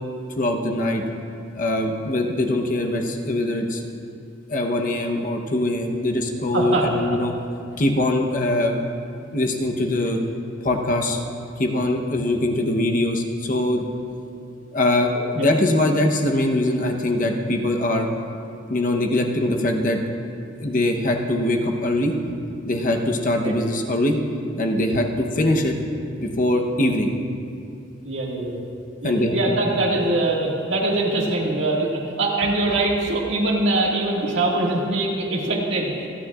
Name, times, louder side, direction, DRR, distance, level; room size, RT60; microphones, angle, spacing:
voice 1, 0.4-1.0 1.5-3.8 4.5-7.3 7.8-8.8 9.3-10.2 10.6-11.2 11.6-13.8 14.7-18.1 18.7-20.0 20.6-22.1 22.6-24.2 24.6-25.8 26.2-27.1 29.0-29.3, left 1 dB, 40° left, 2 dB, 0.9 m, -22 dB
voice 2, 6.5-6.9 15.1-15.5 23.4-23.5 28.0-28.6 29.0-36.1, right 2 dB, 65° right, -3 dB, 1.9 m, -23 dB
27.0 x 9.4 x 2.4 m, 2.5 s
head